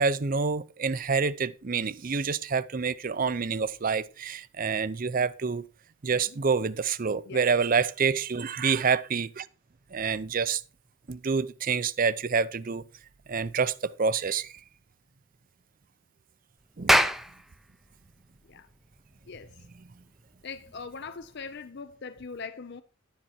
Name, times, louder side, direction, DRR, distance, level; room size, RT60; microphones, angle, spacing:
voice 1, 0.0-5.6 6.0-9.5 9.9-10.6 11.1-12.8 13.3-14.5 16.8-17.0, right 5 dB, 45° right, 0.5 m, -27 dB
Clapping, 16.7-21.5, equal, ahead, 0.6 m, -29 dB
voice 2, 19.3-19.6 20.4-22.8, left 5 dB, 55° left, 0.6 m, -41 dB
11.0 x 7.3 x 4.4 m
head